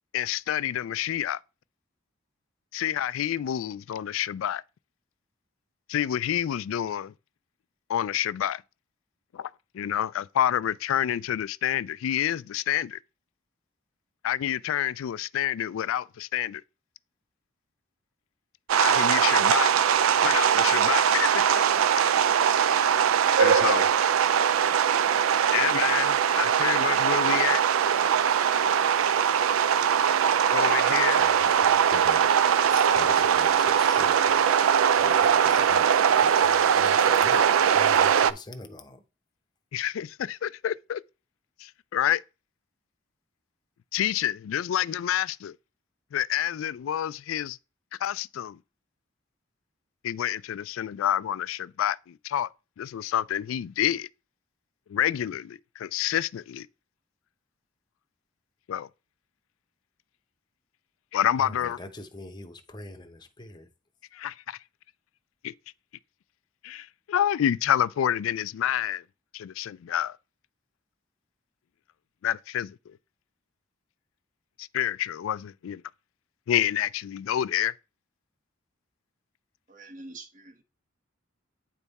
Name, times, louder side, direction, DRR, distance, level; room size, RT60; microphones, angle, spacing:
voice 1, 0.1-1.4 2.7-4.6 5.9-7.1 7.9-8.6 9.3-13.0 14.2-16.6 18.8-19.7 20.2-21.9 23.4-23.9 25.5-27.6 30.5-31.3 39.7-41.0 41.6-42.2 43.9-45.6 46.1-47.6 48.0-48.6 50.0-52.5 52.8-54.1 54.9-56.7 58.7-58.9 61.1-61.8 64.1-64.6 65.4-65.5 66.6-69.0 69.3-70.2 72.2-73.0 74.6-75.8 76.5-77.7, left 10 dB, 75° left, 0.3 m, -28 dB
sound 1, 18.7-38.3, right 8 dB, 80° right, 0.3 m, -21 dB
voice 2, 31.2-32.3 32.7-34.4 35.0-39.0 61.4-63.7, left 2 dB, 20° left, 0.7 m, -43 dB
voice 3, 79.7-80.6, right 2 dB, 40° right, 0.8 m, -45 dB
9.1 x 3.5 x 4.1 m
head